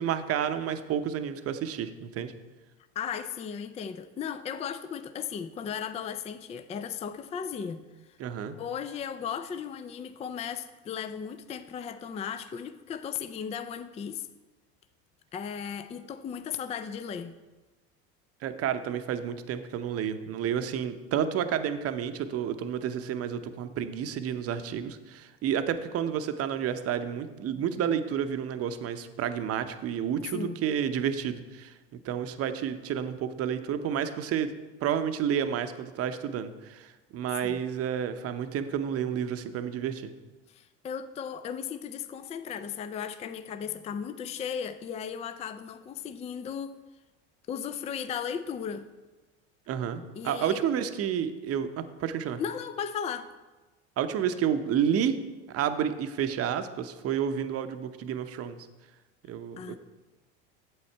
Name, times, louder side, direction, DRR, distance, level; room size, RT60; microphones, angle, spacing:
voice 1, 0.0-2.3 8.2-8.6 18.4-31.8 32.0-34.5 34.8-40.1 49.7-52.4 54.0-55.2 55.5-58.6 59.3-59.8, right 8 dB, 45° right, 0.7 m, -30 dB
voice 2, 3.0-8.2 8.6-14.3 15.3-17.4 30.3-30.6 37.4-37.6 40.5-46.8 47.5-48.9 50.2-50.6 52.4-53.3 59.6-59.8, left 7 dB, 20° left, 0.4 m, -36 dB
8.7 x 7.7 x 4.5 m
supercardioid pair, 100°, 34 cm